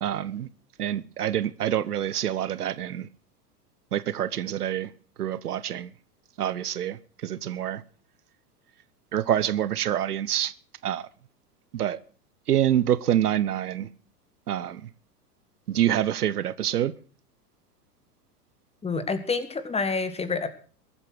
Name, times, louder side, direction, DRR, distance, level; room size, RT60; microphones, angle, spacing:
voice 1, 0.0-0.5 0.8-3.1 3.9-4.9 5.2-5.9 6.4-7.8 9.1-10.5 10.8-11.1 11.7-12.0 12.5-13.9 14.5-14.8 15.7-16.9, right 11 dB, 70° right, 0.9 m, -26 dB
voice 2, 18.8-20.5, left 4 dB, 15° left, 1.9 m, -28 dB
22.0 x 8.7 x 6.3 m
figure-of-eight pair, 95°, 48 cm